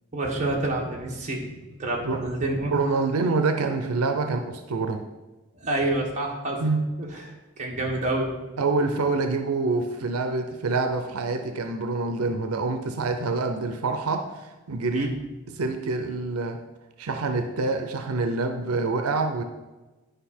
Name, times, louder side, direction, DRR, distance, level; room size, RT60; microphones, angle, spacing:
voice 1, 0.1-1.5 1.8-2.7 5.6-6.6 7.0-8.3 14.9-15.1, right 2 dB, 35° right, -2 dB, 1.5 m, -28 dB
voice 2, 2.7-5.0 6.6-6.8 8.6-15.1 15.5-16.6 17.0-19.4, right 3 dB, 90° right, 6 dB, 0.6 m, -26 dB
10.0 x 4.9 x 4.3 m, 1.2 s
head